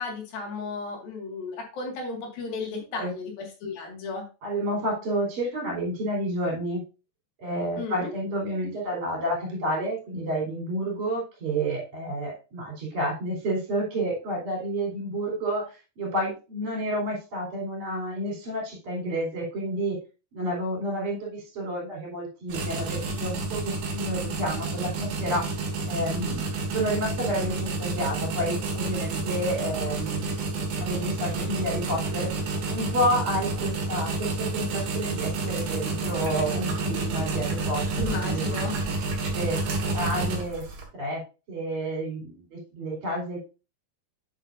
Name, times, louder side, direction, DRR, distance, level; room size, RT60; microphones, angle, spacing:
voice 1, 0.0-4.3 7.8-8.1 38.0-38.8, left 4 dB, 75° left, 1 dB, 3.8 m, -34 dB
voice 2, 4.4-6.8 7.4-20.0 20.3-25.5 25.8-30.5 30.8-32.3 32.7-38.4 39.3-40.6 40.9-41.2 41.5-43.4, right 1 dB, 55° right, -4 dB, 5.1 m, -30 dB
sound 1, 22.5-40.8, right 3 dB, 75° right, 3.5 m, -30 dB
8.9 x 7.4 x 2.6 m, 0.31 s
omnidirectional pair, 4.2 m